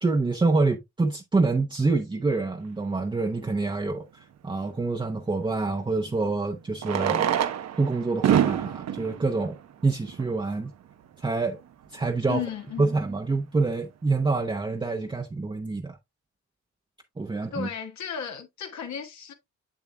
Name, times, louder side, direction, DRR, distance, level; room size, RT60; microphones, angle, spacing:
voice 1, 0.0-7.3 7.8-9.5 9.8-10.7 11.2-11.6 11.9-12.4 12.8-16.0 17.2-17.7, right 3 dB, 15° right, 0.8 m, -26 dB
Fireworks, 3.2-3.3 5.6-5.7 6.7-10.5 11.3-11.4 11.5-11.6 11.8-12.0 12.5-12.7, right 10 dB, 60° right, 0.9 m, -27 dB
voice 2, 12.3-12.9 17.5-19.3, left 8 dB, 65° left, 1.5 m, -34 dB
7.3 x 7.2 x 2.2 m
cardioid pair, 90°, 30 cm